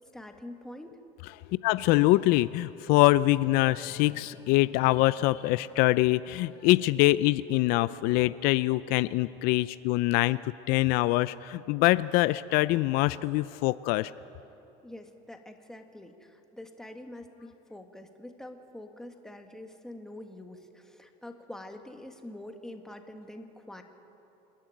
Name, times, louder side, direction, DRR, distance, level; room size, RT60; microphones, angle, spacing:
voice 1, 0.1-0.9 14.8-23.8, left 1 dB, 5° left, 4 dB, 1.5 m, -45 dB
voice 2, 1.6-14.1, left 18 dB, 70° left, 16 dB, 0.4 m, -24 dB
26.5 x 11.0 x 9.2 m, 3.0 s
cardioid pair, 135°, 16 cm